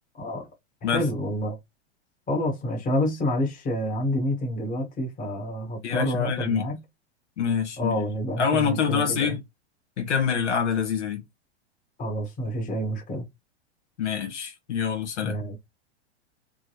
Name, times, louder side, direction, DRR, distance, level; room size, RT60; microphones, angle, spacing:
voice 1, 0.2-0.5 0.8-1.6 2.3-6.8 7.8-9.4 12.0-13.3 15.2-15.6, left 1 dB, 25° left, 1.4 m, -28 dB
voice 2, 5.8-6.7 7.4-7.9 8.4-9.4 10.0-11.2 14.0-15.4, left 7 dB, 80° left, 1.5 m, -25 dB
3.7 x 2.2 x 3.1 m
hypercardioid pair, 125°, 35 cm